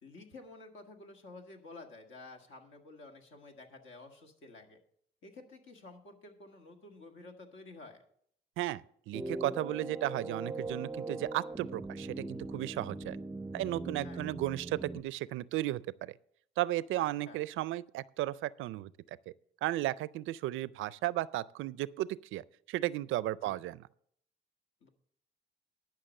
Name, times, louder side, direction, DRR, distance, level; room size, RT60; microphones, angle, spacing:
voice 1, 0.0-4.8 5.2-8.0 14.0-14.2 17.0-17.4 23.4-23.6 24.8-24.9, left 3 dB, 75° left, 1.9 m, -51 dB
voice 2, 8.6-13.2 13.5-16.2 16.6-18.9 19.3-19.4 19.6-22.4 22.7-23.9, right 15 dB, 85° right, 0.4 m, -34 dB
sound 1, 9.1-15.0, right 2 dB, 10° right, 0.5 m, -40 dB
11.5 x 5.9 x 6.5 m
cardioid pair, 90°, 20 cm